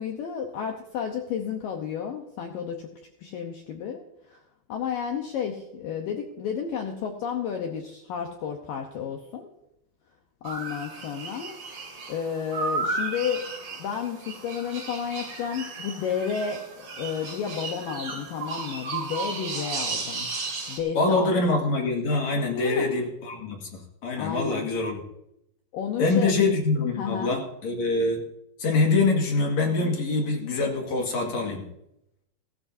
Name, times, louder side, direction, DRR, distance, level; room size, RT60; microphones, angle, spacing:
voice 1, 0.0-2.9 3.2-4.4 4.7-9.5 10.4-11.5 12.1-13.5 13.8-20.3 20.7-21.3 22.5-22.9 24.2-24.7 25.7-26.5 27.0-27.4, left 7 dB, 80° left, 2 dB, 2.0 m, -32 dB
sound 1, 10.4-20.8, right 4 dB, 40° right, 2.8 m, -34 dB
voice 2, 20.9-25.0 26.0-28.2 28.6-31.7, left 3 dB, 50° left, 0 dB, 2.4 m, -25 dB
16.5 x 16.0 x 2.7 m, 0.82 s
omnidirectional pair, 5.4 m